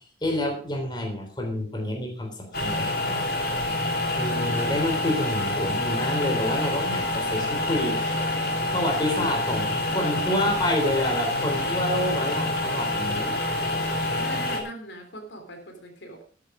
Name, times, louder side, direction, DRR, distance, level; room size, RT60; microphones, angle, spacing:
voice 1, 0.2-3.3 4.2-8.4 8.7-13.4, left 1 dB, 25° left, 2 dB, 3.6 m, -28 dB
sound 1, 2.5-14.6, left 1 dB, 55° left, 3.1 m, -27 dB
voice 2, 4.4-4.9 12.2-12.4 14.1-16.2, equal, 80° left, 5 dB, 3.3 m, -41 dB
13.0 x 9.5 x 5.0 m, 0.42 s
head